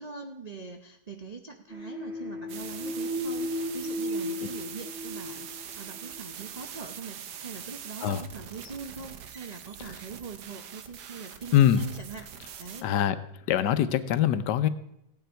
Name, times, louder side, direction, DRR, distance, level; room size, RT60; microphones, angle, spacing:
voice 1, 0.0-5.5 5.7-12.3 12.6-12.9, right 5 dB, 60° right, 4 dB, 0.4 m, -42 dB
sound 1, 1.7-6.2, equal, ahead, 1.6 m, -35 dB
sound 2, 2.5-12.8, right 8 dB, 75° right, 1.5 m, -43 dB
voice 2, 11.5-11.8 12.8-13.2 13.5-14.7, left 10 dB, 80° left, 13 dB, 1.3 m, -23 dB
16.0 x 9.4 x 4.5 m, 0.77 s
omnidirectional pair, 1.8 m